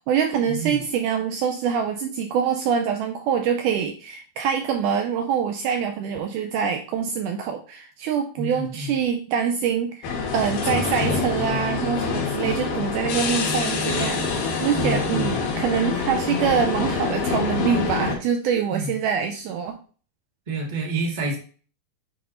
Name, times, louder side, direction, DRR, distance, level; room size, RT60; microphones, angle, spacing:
voice 1, 0.1-14.3 14.6-19.8, right 7 dB, 85° right, 5 dB, 1.8 m, -25 dB
voice 2, 8.4-8.9 14.7-15.5 18.7-18.9 20.5-21.4, right 2 dB, 50° right, -2 dB, 0.5 m, -28 dB
sound 1, 10.0-18.2, left 4 dB, 75° left, 3.1 m, -26 dB
7.7 x 5.9 x 2.6 m, 0.39 s
omnidirectional pair, 4.1 m